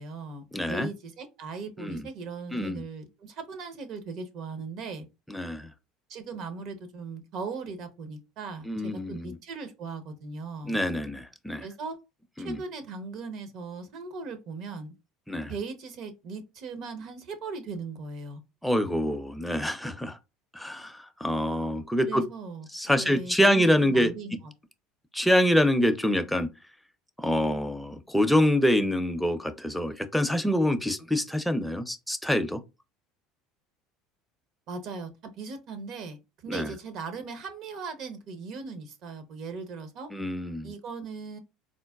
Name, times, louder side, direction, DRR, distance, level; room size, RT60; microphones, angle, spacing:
voice 1, 0.0-5.1 6.1-10.8 11.6-12.0 12.4-14.9 15.5-18.4 22.1-22.7 23.0-24.3 34.7-40.1 40.6-41.4, right 4 dB, 60° right, 0.7 m, -38 dB
voice 2, 0.5-0.9 1.8-2.1 2.5-2.8 5.3-5.7 8.6-9.4 10.6-11.6 12.4-12.6 15.3-15.5 18.6-20.2 20.5-22.3 22.7-24.1 25.1-26.5 27.2-32.6 36.5-36.7 40.1-40.7, equal, ahead, 0.4 m, -26 dB
3.8 x 2.1 x 2.3 m
supercardioid pair, 85°, 0 cm